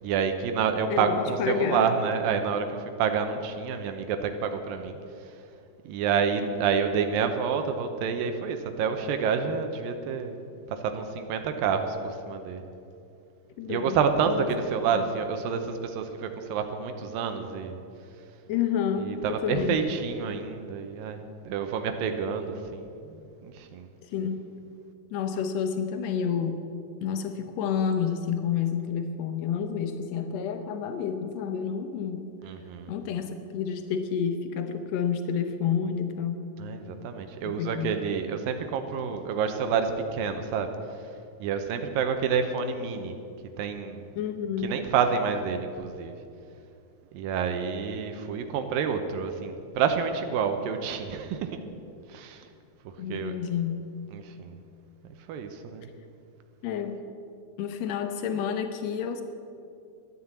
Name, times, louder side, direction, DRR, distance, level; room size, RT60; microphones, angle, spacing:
voice 1, 0.0-5.0 5.9-10.4 10.7-12.6 13.7-17.8 19.0-23.9 32.4-32.9 36.6-40.7 41.4-43.1 43.6-44.1 44.6-46.1 47.1-51.5 52.1-52.5 53.1-53.3 54.1-54.5 55.3-55.9, right 6 dB, 85° right, 7 dB, 2.5 m, -28 dB
voice 2, 0.9-1.8 13.6-14.0 14.3-14.5 14.9-15.0 18.5-19.8 24.1-24.4 25.1-26.7 27.0-32.3 32.9-36.5 37.4-38.0 44.1-44.7 53.0-53.9 56.6-57.0 57.6-59.2, left 7 dB, 85° left, 8 dB, 1.5 m, -29 dB
13.5 x 9.7 x 8.4 m, 2.6 s
omnidirectional pair, 4.1 m